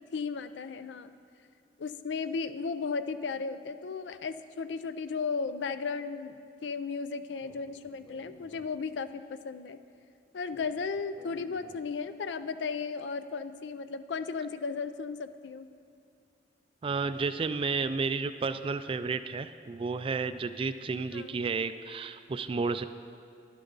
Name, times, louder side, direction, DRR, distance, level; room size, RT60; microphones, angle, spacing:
voice 1, 0.1-1.1 1.8-9.8 10.3-15.7 21.1-21.4, left 5 dB, 80° left, 12 dB, 0.4 m, -35 dB
Speech, 7.4-9.2 10.5-12.2, equal, 10° left, 1.1 m, -56 dB
voice 2, 16.8-22.8, right 4 dB, 30° right, 12 dB, 0.3 m, -32 dB
11.5 x 11.0 x 3.9 m, 2.4 s
head